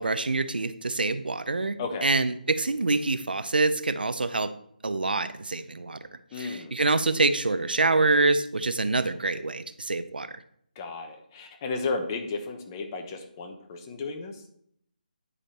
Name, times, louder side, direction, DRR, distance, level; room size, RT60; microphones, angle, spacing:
voice 1, 0.0-4.5 4.8-6.0 6.4-10.3, right 3 dB, 80° right, 11 dB, 0.7 m, -26 dB
voice 2, 1.8-2.1 6.3-6.7 10.8-14.4, left 3 dB, 20° left, 4 dB, 1.0 m, -33 dB
9.9 x 5.0 x 4.3 m, 0.68 s
figure-of-eight pair, 160°, 5 cm